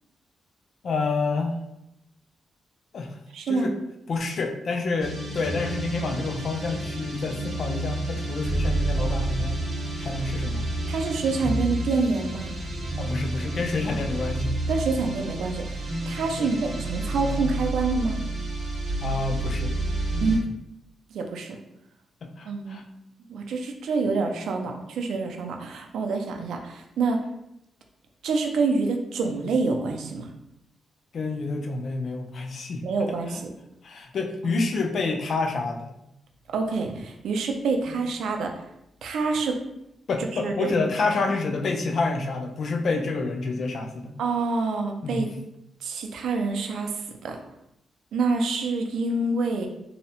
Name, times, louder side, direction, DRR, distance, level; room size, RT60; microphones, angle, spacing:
voice 1, 0.8-1.6 2.9-3.2 3.5-3.7 4.1-9.6 10.0-10.7 13.0-14.5 16.4-16.5 19.0-19.7 20.1-20.4 22.2-22.8 31.1-32.8 33.3-33.4 33.8-35.9 37.9-38.0 40.1-44.2 45.0-45.2, left 3 dB, 60° left, 4 dB, 0.3 m, -28 dB
voice 2, 3.3-3.7 10.9-12.6 14.7-18.2 20.2-20.5 21.1-21.6 22.4-22.8 23.3-27.2 28.2-30.3 32.8-33.5 36.5-38.5 39.0-39.6 40.3-40.7 44.2-45.3 45.8-47.4 48.1-49.7, right 3 dB, 90° right, 4 dB, 0.4 m, -27 dB
sound 1, 5.0-20.4, right 1 dB, 50° right, 0.9 m, -30 dB
2.7 x 2.0 x 2.7 m, 0.83 s
cardioid pair, 110°, 0 cm